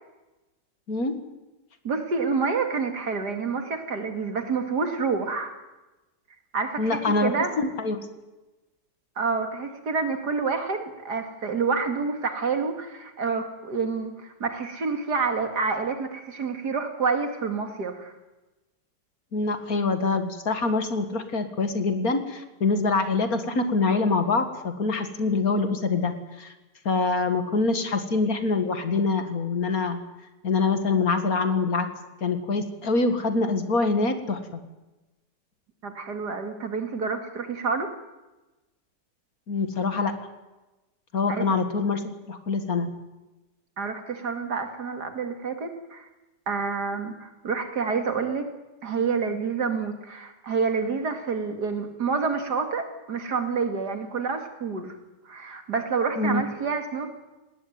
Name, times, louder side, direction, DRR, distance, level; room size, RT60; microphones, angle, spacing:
voice 1, 1.8-5.6 6.5-7.5 9.2-18.1 35.8-37.9 41.3-41.5 43.8-46.1 46.5-48.5 48.8-55.0 55.3-57.1, right 5 dB, 65° right, 6 dB, 2.8 m, -28 dB
voice 2, 6.8-8.0 19.3-26.1 26.4-26.5 26.9-30.0 30.4-31.9 32.2-34.6 39.5-40.2 41.1-42.9 56.2-56.4, left 3 dB, 55° left, 8 dB, 2.2 m, -25 dB
19.5 x 17.5 x 9.5 m, 1.1 s
omnidirectional pair, 1.9 m